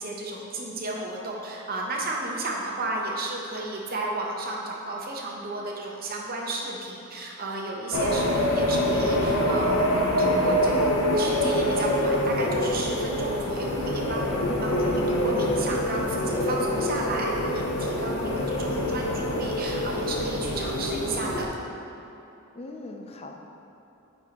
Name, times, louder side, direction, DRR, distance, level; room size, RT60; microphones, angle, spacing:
voice 1, 0.0-21.5, right 2 dB, 45° right, -1 dB, 0.9 m, -33 dB
sound 1, 7.9-21.4, left 1 dB, 80° left, 0.7 m, -25 dB
voice 2, 18.0-18.5 22.5-23.6, left 2 dB, 30° left, 3 dB, 0.5 m, -40 dB
9.5 x 4.5 x 2.9 m, 2.9 s
head